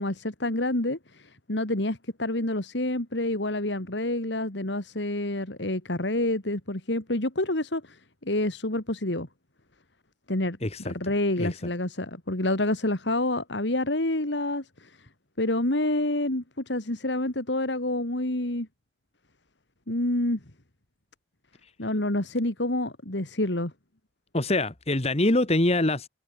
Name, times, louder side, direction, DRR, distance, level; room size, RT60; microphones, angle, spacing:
voice 1, 0.0-9.3 10.3-10.6 10.8-15.0 15.4-18.7 19.9-20.4 21.8-23.7, left 1 dB, 70° left, 2.9 m, -28 dB
voice 2, 10.6-11.1 11.4-11.6 24.3-26.1, left 1 dB, 35° left, 1.8 m, -25 dB
head